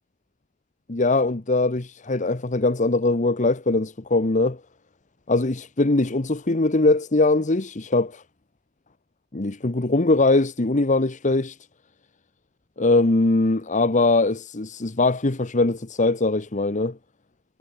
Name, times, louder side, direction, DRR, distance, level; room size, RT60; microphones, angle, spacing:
voice 1, 0.9-4.6 5.3-8.2 9.3-11.6 12.8-17.0, left 2 dB, 40° left, 1.1 m, -21 dB
head